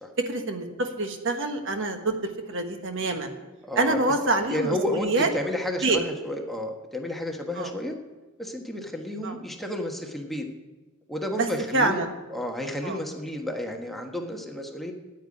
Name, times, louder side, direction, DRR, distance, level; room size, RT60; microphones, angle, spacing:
voice 1, 0.3-2.2 2.5-3.3 3.8-5.3 5.8-6.0 7.6-7.7 9.2-9.4 11.4-11.5 11.7-12.1 12.8-13.0, right 2 dB, 65° right, 5 dB, 1.4 m, -26 dB
voice 2, 3.6-4.0 4.5-7.9 8.4-10.4 11.1-12.0 12.3-14.9, left 1 dB, ahead, 1 dB, 1.3 m, -31 dB
9.4 x 9.2 x 9.8 m, 1.2 s
head